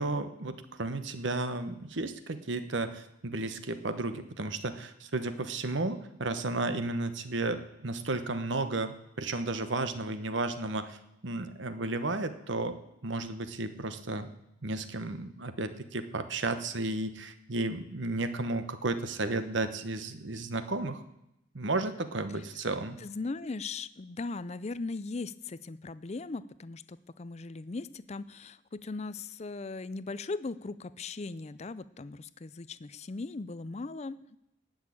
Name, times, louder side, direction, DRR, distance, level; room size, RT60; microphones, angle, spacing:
voice 1, 0.0-11.0 11.2-14.3 14.6-21.0 21.5-23.0, right 2 dB, 65° right, 10 dB, 1.1 m, -33 dB
voice 2, 23.0-34.2, left 3 dB, 35° left, 16 dB, 0.4 m, -38 dB
18.5 x 6.5 x 8.5 m, 0.85 s
head